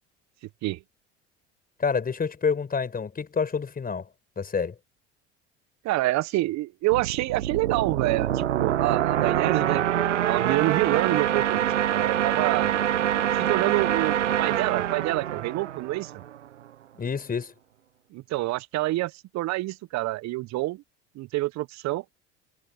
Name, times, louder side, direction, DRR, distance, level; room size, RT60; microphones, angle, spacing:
voice 1, 1.8-4.1 4.4-4.7 17.0-17.5, left 5 dB, 25° left, 5.3 m, -28 dB
voice 2, 5.8-12.8 13.3-16.2 18.1-20.8 21.1-22.0, right 18 dB, 50° right, 1.4 m, -27 dB
sound 1, 6.9-16.4, right 11 dB, 85° right, 0.9 m, -25 dB
hypercardioid pair, 75°, 35 cm